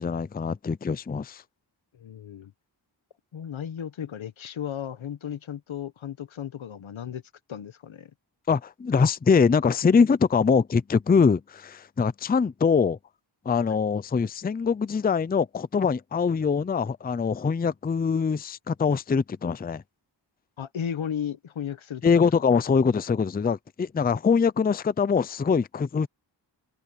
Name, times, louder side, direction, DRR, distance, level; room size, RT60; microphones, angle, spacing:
voice 1, 0.0-1.4 8.5-13.0 13.5-19.8 22.0-26.1, left 5 dB, 20° left, 0.4 m, -23 dB
voice 2, 1.9-2.5 3.3-7.2 7.5-8.1 13.7-13.8 20.6-22.2, left 9 dB, 90° left, 1.1 m, -35 dB
wide cardioid pair, 135°, 46 cm